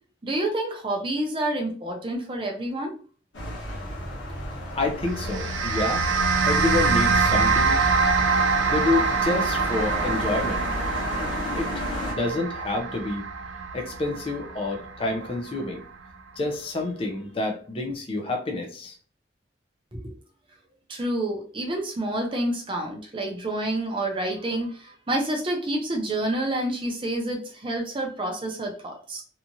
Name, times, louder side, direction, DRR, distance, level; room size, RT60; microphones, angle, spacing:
voice 1, 0.2-2.9 19.9-20.1 20.9-29.2, right 1 dB, 25° right, 2 dB, 0.5 m, -28 dB
sound 1, 3.3-12.1, left 1 dB, 80° left, 1.2 m, -33 dB
voice 2, 4.7-6.1 6.4-7.8 8.7-10.7 11.6-13.3 13.7-15.8 16.4-19.0, left 2 dB, 30° left, 1 dB, 0.4 m, -28 dB
sound 2, 5.0-15.6, right 4 dB, 85° right, 0.4 m, -25 dB
2.8 x 2.4 x 2.6 m, 0.40 s
head